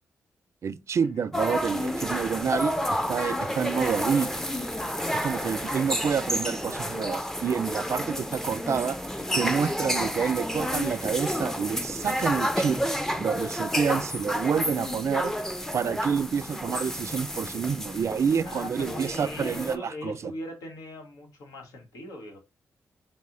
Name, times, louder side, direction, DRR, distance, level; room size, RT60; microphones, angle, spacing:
voice 1, 0.6-4.3 5.1-9.0 9.4-12.8 13.2-15.3 15.7-20.3, right 7 dB, 55° right, 0.3 m, -28 dB
sound 1, 1.3-19.8, equal, 5° left, 0.5 m, -30 dB
voice 2, 18.4-22.4, left 1 dB, 80° left, 1.1 m, -40 dB
4.0 x 2.1 x 3.7 m
supercardioid pair, 50°, 6 cm